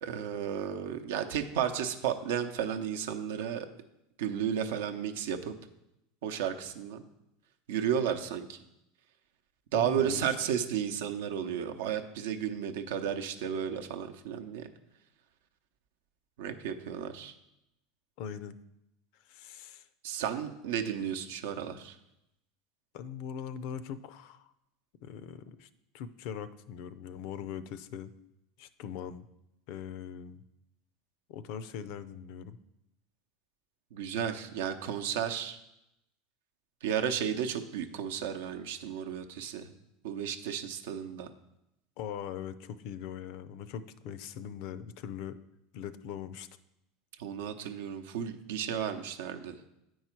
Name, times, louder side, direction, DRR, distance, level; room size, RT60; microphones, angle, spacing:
voice 1, 0.0-3.7 4.2-5.6 6.2-7.0 7.7-8.6 9.7-14.7 16.4-17.3 20.0-22.0 33.9-35.6 36.8-39.7 40.0-41.3 47.2-49.5, right 8 dB, 80° right, 7 dB, 0.7 m, -33 dB
voice 2, 9.7-10.4 18.2-18.6 19.3-19.9 22.9-24.5 25.0-25.7 25.9-28.1 28.6-29.3 29.7-30.4 31.3-32.6 42.0-45.4 45.7-46.5, left 8 dB, 65° left, 14 dB, 0.5 m, -41 dB
8.9 x 4.7 x 4.5 m, 0.86 s
supercardioid pair, 105°, 0 cm